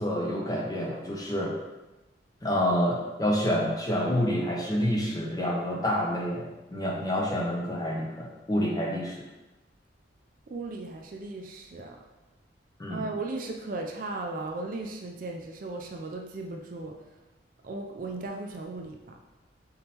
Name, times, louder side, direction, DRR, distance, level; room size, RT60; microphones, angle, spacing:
voice 1, 0.0-1.5 2.4-9.2 12.8-13.0, equal, 20° left, -3 dB, 0.7 m, -28 dB
voice 2, 10.5-12.0 12.9-17.0 17.6-19.2, right 2 dB, 45° right, 2 dB, 0.3 m, -36 dB
3.9 x 3.6 x 2.8 m, 1.0 s
head